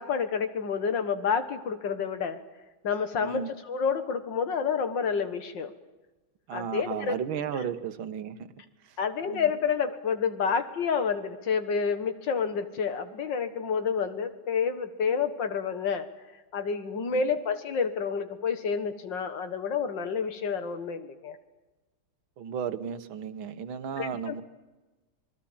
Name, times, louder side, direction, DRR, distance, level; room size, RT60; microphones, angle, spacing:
voice 1, 0.0-2.4 2.8-5.7 6.5-7.2 9.0-16.1 16.5-21.4 24.0-24.4, left 6 dB, 65° left, 10 dB, 2.1 m, -29 dB
voice 2, 6.5-8.5 9.3-9.4 17.1-17.2 22.4-24.4, right 7 dB, 85° right, 11 dB, 2.0 m, -34 dB
26.0 x 20.5 x 7.3 m, 1.2 s
omnidirectional pair, 2.1 m